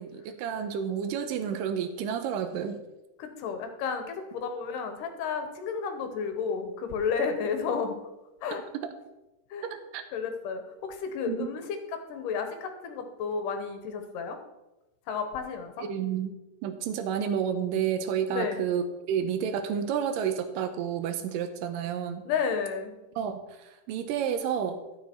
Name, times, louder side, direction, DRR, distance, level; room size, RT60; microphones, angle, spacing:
voice 1, 0.0-2.8 8.8-9.0 9.6-10.0 11.3-11.5 15.8-16.3 16.6-22.2 23.2-24.8, right 8 dB, 80° right, 9 dB, 2.4 m, -30 dB
voice 2, 3.2-8.0 8.4-8.6 9.5-9.7 10.1-11.6 11.9-14.4 15.1-15.9 18.3-18.6 22.3-22.9, left 6 dB, 75° left, 7 dB, 2.5 m, -32 dB
12.0 x 6.8 x 4.4 m, 0.97 s
omnidirectional pair, 3.9 m